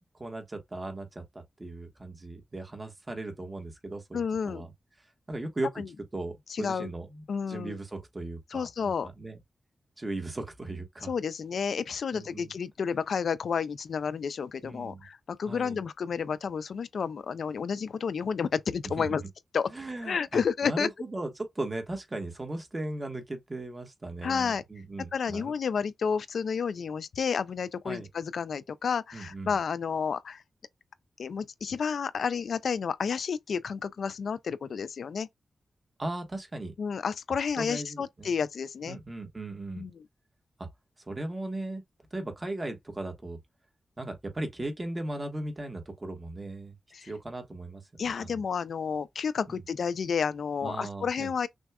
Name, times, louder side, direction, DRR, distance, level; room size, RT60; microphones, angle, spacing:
voice 1, 0.2-4.7 5.3-5.8 6.1-9.4 10.0-11.1 12.1-12.5 14.6-15.0 15.4-15.8 19.0-19.3 19.7-25.5 27.8-28.1 29.1-29.6 36.0-36.7 37.6-38.3 38.8-39.9 40.6-40.7 41.1-41.8 42.1-43.4 44.0-46.7 47.0-48.4 49.5-49.6 50.6-51.3, right 2 dB, 20° right, 1.2 m, -37 dB
voice 2, 4.1-4.7 5.8-5.9 6.5-6.9 7.3-7.8 8.5-9.1 11.0-19.2 19.5-19.7 20.0-20.9 24.2-24.6 25.1-30.4 31.2-35.3 36.8-39.0 39.8-40.0 46.9-47.1 48.0-51.5, left 6 dB, 75° left, 0.3 m, -31 dB
6.1 x 2.3 x 2.3 m
wide cardioid pair, 130°, 0 cm